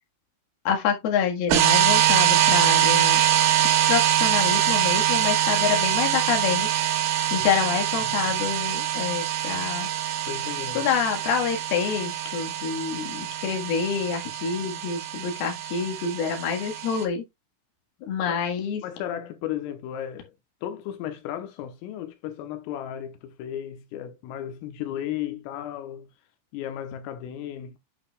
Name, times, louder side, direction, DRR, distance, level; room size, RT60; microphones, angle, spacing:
voice 1, 0.6-3.2 3.6-6.7 7.3-9.9 10.7-17.2 18.1-18.8, left 7 dB, 60° left, 3.0 m, -27 dB
sound 1, 1.5-17.0, right 11 dB, 80° right, 3.4 m, -24 dB
voice 2, 8.0-8.4 10.3-10.9 18.3-18.4 18.8-20.3 20.6-26.1 26.5-27.8, left 10 dB, 85° left, 3.5 m, -34 dB
8.8 x 7.9 x 2.3 m
omnidirectional pair, 6.0 m